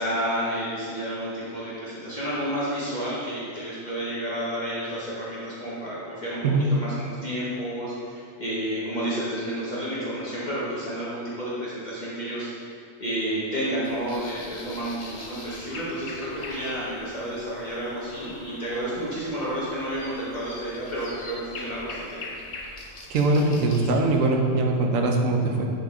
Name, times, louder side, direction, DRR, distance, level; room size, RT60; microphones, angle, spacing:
voice 1, 0.0-22.3, equal, 35° left, -9 dB, 1.1 m, -31 dB
sound 1, 13.8-24.2, left 3 dB, 80° left, 1.1 m, -42 dB
voice 2, 23.1-25.6, right 2 dB, 80° right, 2 dB, 1.1 m, -22 dB
7.0 x 3.8 x 3.6 m, 2.4 s
omnidirectional pair, 1.3 m